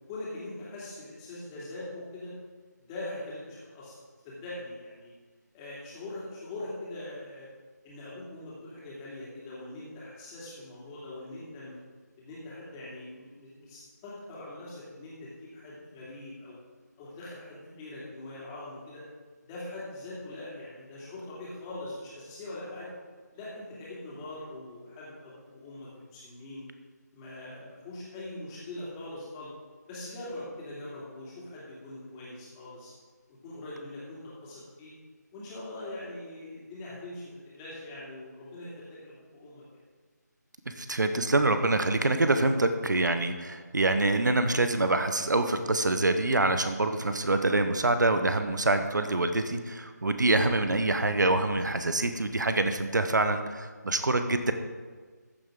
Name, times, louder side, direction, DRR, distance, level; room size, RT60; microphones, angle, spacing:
voice 1, 0.0-2.3 2.8-4.0 4.2-5.1 5.5-7.5 7.8-11.8 12.2-16.6 17.0-19.0 19.4-22.9 23.3-26.6 27.1-29.5 29.9-32.9 33.4-34.9 35.3-39.6, left 2 dB, 15° left, -7 dB, 2.8 m, -42 dB
voice 2, 40.7-54.5, right 2 dB, 80° right, 8 dB, 1.1 m, -25 dB
14.5 x 7.7 x 3.8 m, 1.5 s
figure-of-eight pair, 165°, 10 cm